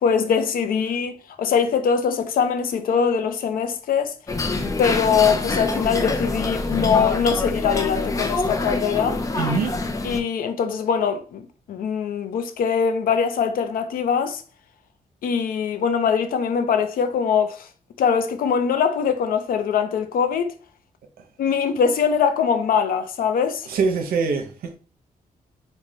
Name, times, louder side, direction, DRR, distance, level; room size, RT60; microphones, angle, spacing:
voice 1, 0.0-4.1 4.8-9.2 10.0-11.4 11.7-14.4 15.2-17.7 18.0-20.5 21.4-23.7, left 6 dB, 75° left, 0.5 m, -22 dB
sound 1, 4.3-10.2, left 3 dB, 20° left, 0.4 m, -25 dB
voice 2, 9.4-9.7 23.7-24.8, right 5 dB, 85° right, 0.7 m, -23 dB
3.1 x 2.2 x 3.8 m
cardioid pair, 120°, 15 cm